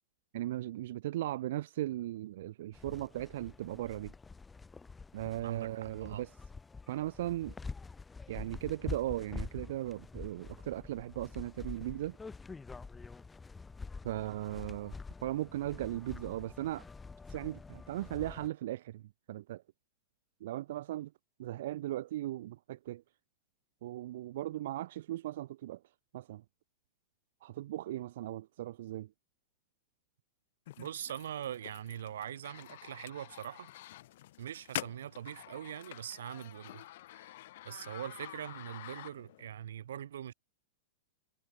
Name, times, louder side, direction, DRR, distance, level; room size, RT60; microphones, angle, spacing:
voice 1, 0.3-4.1 5.1-6.3 6.9-7.5 8.3-12.2 14.0-14.9 15.2-16.9 17.3-19.6 20.4-21.1 21.4-23.0 23.8-25.8 26.1-26.4 27.4-29.1, right 14 dB, 60° right, 0.3 m, -37 dB
sound 1, 2.7-18.5, left 4 dB, 10° left, 0.4 m, -46 dB
voice 2, 5.4-6.2 30.8-33.7 34.4-36.8 37.1-37.3 37.6-40.3, right 10 dB, 90° right, 2.7 m, -42 dB
sound 2, 30.7-39.5, left 15 dB, 55° left, 2.4 m, -47 dB
supercardioid pair, 165°, 0 cm